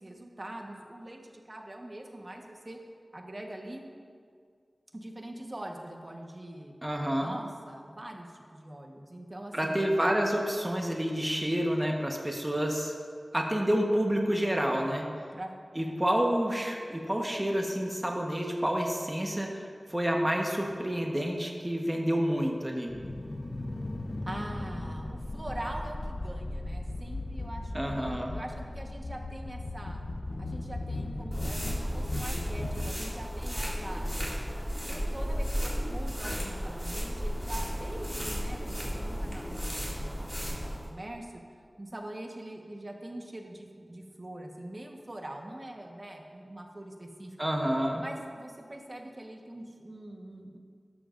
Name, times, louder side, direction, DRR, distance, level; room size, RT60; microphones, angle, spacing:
voice 1, 0.0-2.8 3.1-3.8 4.9-6.7 7.2-9.8 14.7-15.1 15.3-16.0 23.7-23.8 24.2-30.0 30.4-34.1 34.9-41.3 41.8-47.4 48.0-50.6, right 1 dB, 40° right, 1 dB, 1.2 m, -43 dB
voice 2, 6.8-7.4 9.5-12.9 13.3-15.1 15.8-22.9 27.7-28.4 47.4-48.0, equal, 20° right, 0 dB, 1.2 m, -29 dB
sound 1, 22.9-32.9, left 2 dB, 50° left, 0.7 m, -37 dB
sound 2, 31.3-40.9, equal, ahead, 2.2 m, -34 dB
12.5 x 12.5 x 2.6 m, 2.1 s
wide cardioid pair, 65°, 0 cm